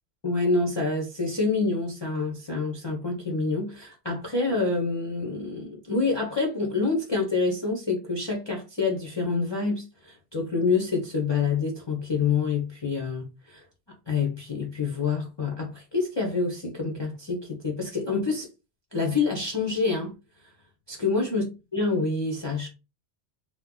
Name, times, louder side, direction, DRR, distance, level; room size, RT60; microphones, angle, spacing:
voice 1, 0.2-13.6 14.1-18.5 18.9-20.1 20.9-21.4 21.7-22.7, left 4 dB, 30° left, 0.6 m, -27 dB
2.8 x 2.1 x 3.7 m
omnidirectional pair, 1.1 m